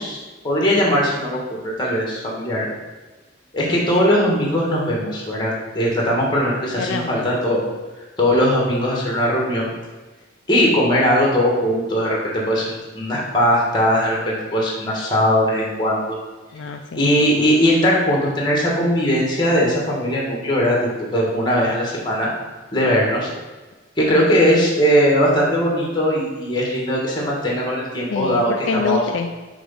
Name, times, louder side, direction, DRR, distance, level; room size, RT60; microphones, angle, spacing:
voice 1, 0.0-2.7 3.5-7.6 8.2-9.7 10.5-16.2 16.9-22.3 22.7-23.3 24.0-29.0, equal, 20° left, -3 dB, 1.4 m, -19 dB
voice 2, 6.8-7.3 16.5-17.5 28.1-29.5, left 4 dB, 60° left, 4 dB, 0.3 m, -26 dB
6.2 x 3.6 x 5.6 m, 1.2 s
head